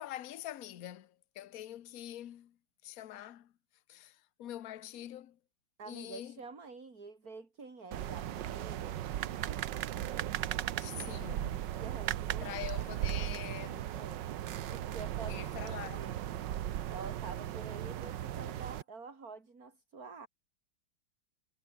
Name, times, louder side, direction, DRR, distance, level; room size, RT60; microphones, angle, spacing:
voice 1, 0.0-2.6 2.8-3.5 3.9-5.4 5.8-6.4 10.8-11.7 12.4-13.9 15.3-16.1, left 12 dB, 55° left, 1.1 m, -45 dB
voice 2, 5.8-9.0 11.8-12.9 13.9-14.3 14.7-16.1 16.9-20.3, right 4 dB, 40° right, 3.9 m, -48 dB
sound 1, 7.9-18.8, right 12 dB, 60° right, 1.4 m, -37 dB
omnidirectional pair, 2.4 m